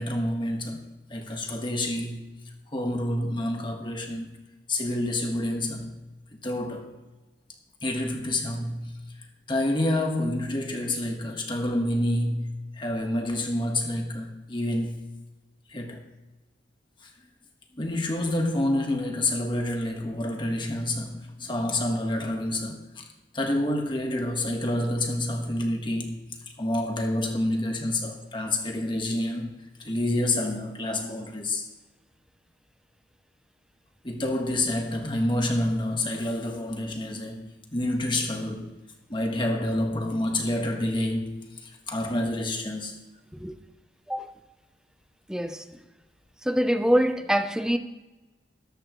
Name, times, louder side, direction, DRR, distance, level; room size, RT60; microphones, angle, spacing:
voice 1, 0.0-2.3 2.7-4.4 4.7-5.9 6.4-6.9 7.8-8.9 9.5-15.0 15.7-16.0 17.0-17.1 17.7-23.0 23.3-26.2 26.6-31.6 34.0-38.7 39.1-43.0, left 1 dB, 25° left, 1.5 m, -28 dB
voice 2, 45.3-45.6 46.4-47.8, equal, 5° right, 0.6 m, -24 dB
14.0 x 13.0 x 3.1 m
head